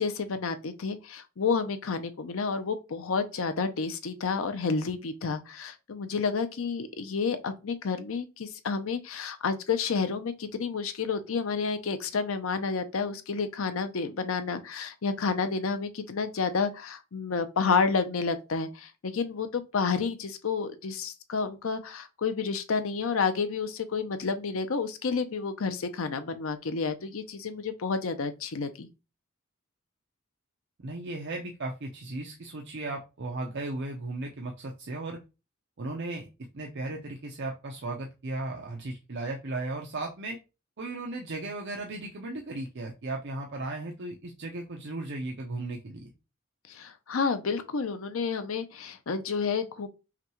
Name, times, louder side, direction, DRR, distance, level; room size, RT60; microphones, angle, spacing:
voice 1, 0.0-28.9 46.7-49.9, left 5 dB, 75° left, 0.6 m, -30 dB
voice 2, 30.8-35.2 35.8-36.3 36.5-40.4 40.8-46.1, right 2 dB, 55° right, 0.6 m, -36 dB
5.8 x 2.3 x 3.0 m
head